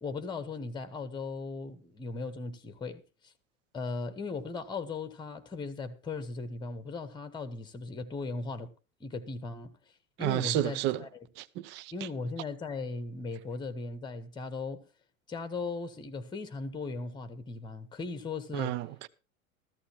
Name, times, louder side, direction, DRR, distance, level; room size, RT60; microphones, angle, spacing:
voice 1, 0.0-3.3 3.7-8.7 9.0-9.7 10.2-11.1 11.9-14.8 15.3-18.8, left 3 dB, 10° left, 1.2 m, -38 dB
voice 2, 10.2-11.1 11.4-12.1 18.5-19.1, right 14 dB, 25° right, 0.5 m, -31 dB
14.0 x 14.0 x 2.9 m
figure-of-eight pair, 90°, 41 cm